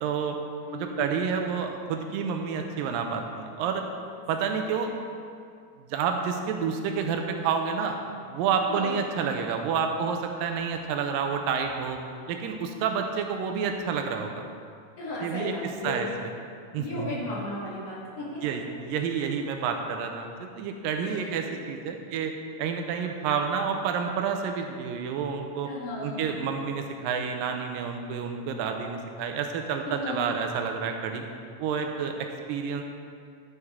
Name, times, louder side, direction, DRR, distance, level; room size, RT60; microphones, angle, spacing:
voice 1, 0.0-0.4 0.7-3.8 4.3-4.9 5.9-8.0 8.3-12.0 12.3-14.4 15.2-15.6 15.8-16.1 16.7-17.1 18.4-22.3 22.6-25.7 26.0-31.2 31.6-32.8, right 6 dB, 80° right, 4 dB, 2.3 m, -29 dB
voice 2, 0.6-1.1 8.7-9.0 15.0-16.2 16.8-18.4 21.0-21.6 25.6-26.2 29.8-30.4, left 2 dB, 50° left, -6 dB, 2.5 m, -35 dB
12.5 x 8.0 x 3.6 m, 2.3 s
omnidirectional pair, 4.1 m